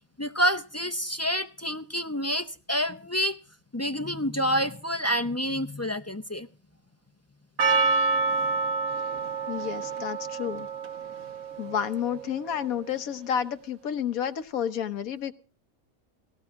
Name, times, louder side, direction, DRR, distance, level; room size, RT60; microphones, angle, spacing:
voice 1, 0.2-3.4 3.7-6.5, equal, 20° left, 8 dB, 0.4 m, -28 dB
Percussion, 7.6-12.6, right 3 dB, 75° right, 1.7 m, -28 dB
voice 2, 9.5-10.7 11.6-15.3, left 8 dB, 80° left, 11 dB, 1.4 m, -30 dB
18.0 x 17.5 x 3.6 m, 0.35 s
omnidirectional pair, 1.5 m